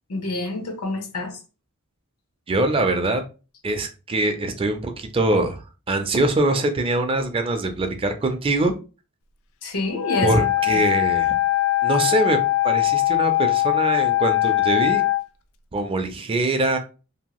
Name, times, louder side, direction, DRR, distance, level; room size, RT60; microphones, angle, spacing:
voice 1, 0.1-1.4 9.6-10.8, left 2 dB, 80° left, 0.7 m, -28 dB
voice 2, 2.5-3.2 3.6-5.6 5.9-8.7 10.2-11.3 11.8-12.4 12.6-15.0 15.7-16.8, right 2 dB, 25° right, 0.4 m, -23 dB
Wind instrument woodwind instrument, 9.9-15.2, left 15 dB, 65° left, 0.3 m, -21 dB
2.7 x 2.3 x 2.9 m
head